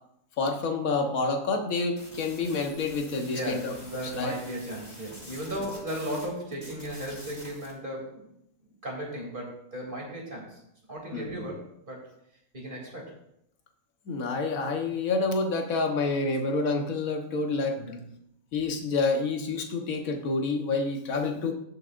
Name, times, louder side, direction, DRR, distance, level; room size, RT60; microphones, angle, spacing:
voice 1, 0.4-3.7 4.0-4.3 11.1-11.4 14.1-17.8 18.5-21.5, left 3 dB, 60° left, 3 dB, 1.7 m, -28 dB
sound 1, 2.0-6.3 6.5-7.7, equal, 25° left, 2.4 m, -47 dB
voice 2, 3.1-8.2 8.8-10.6 10.9-12.0 12.5-13.1 17.8-18.1, right 1 dB, 30° right, -2 dB, 3.2 m, -36 dB
16.0 x 7.7 x 2.6 m, 0.76 s
omnidirectional pair, 1.6 m